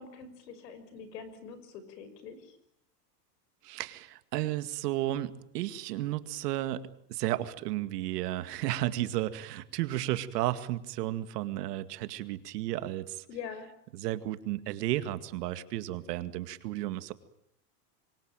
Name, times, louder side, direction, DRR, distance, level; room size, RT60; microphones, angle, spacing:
voice 1, 0.0-2.6 13.3-13.7, left 6 dB, 75° left, 13 dB, 6.2 m, -44 dB
voice 2, 3.6-13.2 13.9-17.1, right 14 dB, 70° right, 12 dB, 2.2 m, -33 dB
27.0 x 23.5 x 9.0 m, 0.72 s
supercardioid pair, 135°, 49 cm